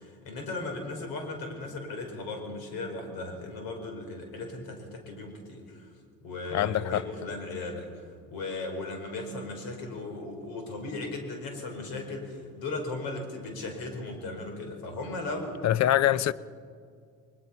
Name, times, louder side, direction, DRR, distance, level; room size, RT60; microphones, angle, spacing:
voice 1, 0.0-5.9 6.2-7.9 8.3-15.6 16.1-16.2, left 2 dB, 75° left, 5.0 m, -37 dB
voice 2, 6.5-7.0 15.6-16.3, left 12 dB, 50° left, 0.7 m, -24 dB
22.5 x 21.5 x 5.7 m
supercardioid pair, 95°, 36 cm